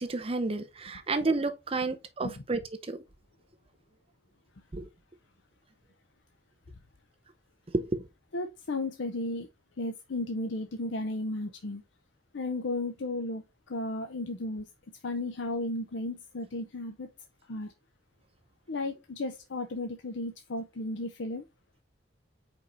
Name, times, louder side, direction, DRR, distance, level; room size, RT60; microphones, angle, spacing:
voice 1, 0.0-2.6 2.9-3.0 4.7-4.8 7.7-8.0, right 3 dB, 30° right, 0.6 m, -30 dB
voice 2, 8.3-9.5 9.8-11.8 12.3-14.6 15.0-17.1 17.5-17.7 18.7-21.4, left 2 dB, 65° left, 0.6 m, -34 dB
5.2 x 4.7 x 3.9 m
head